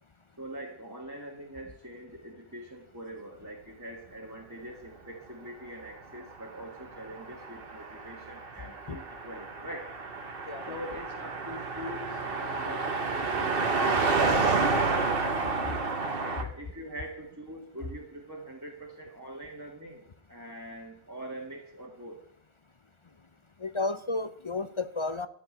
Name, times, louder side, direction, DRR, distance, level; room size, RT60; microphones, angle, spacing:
voice 1, 0.4-10.0 10.7-14.9 16.2-20.0 20.3-22.2, right 1 dB, 15° right, -2 dB, 1.8 m, -43 dB
Car passing by, 6.3-16.4, right 4 dB, 50° right, 1.5 m, -30 dB
voice 2, 10.5-10.8 16.4-16.5 23.6-25.3, left 3 dB, 40° left, 12 dB, 0.4 m, -32 dB
12.5 x 7.2 x 9.7 m, 0.67 s
omnidirectional pair, 1.3 m